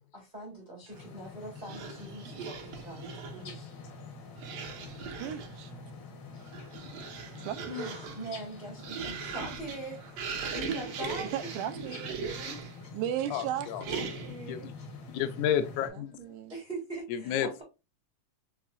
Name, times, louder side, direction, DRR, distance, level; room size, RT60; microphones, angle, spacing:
voice 1, 0.1-3.7 7.7-11.5 12.2-12.9 13.8-14.9 16.5-17.6, right 1 dB, 35° right, 0.7 m, -42 dB
sound 1, 0.9-15.9, left 3 dB, 60° left, 1.1 m, -46 dB
sound 2, 1.6-3.5 4.4-5.6 6.3-12.8 13.8-14.5, right 6 dB, 65° right, 1.7 m, -39 dB
voice 2, 5.2-5.7 7.4-7.8 11.3-12.2 12.9-13.7 16.2-16.6, right 11 dB, 85° right, 2.1 m, -35 dB
voice 3, 13.3-13.8 14.5-14.7 15.1-16.2 17.1-17.6, left 9 dB, 80° left, 2.0 m, -31 dB
5.7 x 2.9 x 2.4 m
omnidirectional pair, 3.6 m